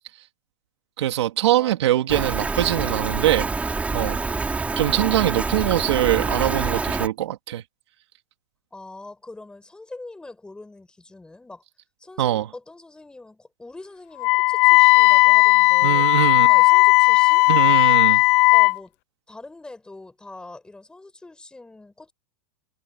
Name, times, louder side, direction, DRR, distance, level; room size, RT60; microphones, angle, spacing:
voice 1, 1.0-3.5 3.9-4.2 4.8-7.6 12.2-12.5 15.8-16.5 17.5-18.2, right 13 dB, 80° right, 3.1 m, -22 dB
Rain, 2.1-7.1, right 4 dB, 10° right, 3.6 m, -26 dB
voice 2, 8.7-11.6 12.0-16.1 16.5-17.5 18.5-18.9 19.3-22.1, left 2 dB, 5° left, 6.7 m, -43 dB
Wind instrument woodwind instrument, 14.2-18.8, left 26 dB, 40° left, 0.6 m, -15 dB
supercardioid pair, 150°, 14 cm